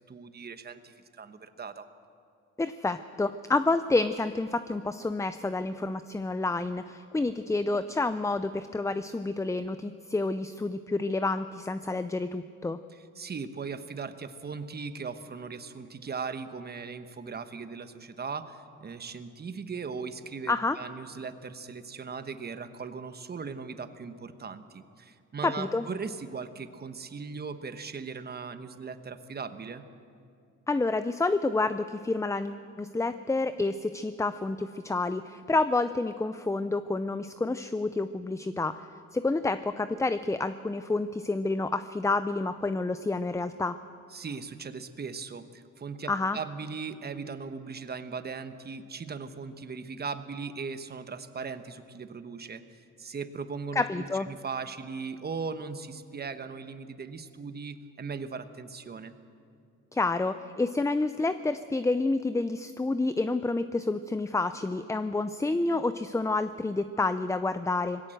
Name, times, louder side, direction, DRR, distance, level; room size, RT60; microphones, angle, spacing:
voice 1, 0.1-1.9 13.2-29.8 44.1-59.1, right 5 dB, 30° right, 10 dB, 1.2 m, -38 dB
voice 2, 2.6-12.8 20.5-20.8 25.4-25.8 30.7-38.8 39.1-43.8 46.1-46.4 53.7-54.3 59.9-68.0, left 3 dB, 10° left, 12 dB, 0.5 m, -29 dB
20.0 x 17.0 x 7.8 m, 2.4 s
cardioid pair, 90°, 30 cm